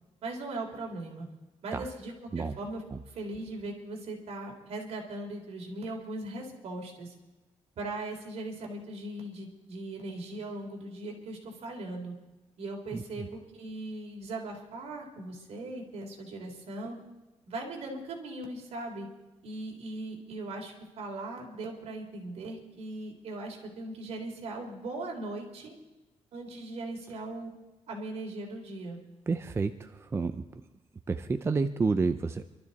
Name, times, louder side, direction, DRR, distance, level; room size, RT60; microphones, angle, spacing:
voice 1, 0.2-1.3 1.6-7.1 7.8-12.1 12.6-17.0 17.5-19.1 19.4-25.7 26.3-27.5 27.9-29.0, right 2 dB, 60° right, 0 dB, 3.4 m, -39 dB
voice 2, 29.3-30.6 31.1-32.4, right 4 dB, 20° right, 9 dB, 0.5 m, -30 dB
26.0 x 12.5 x 4.1 m, 1.1 s
cardioid pair, 140°, 12 cm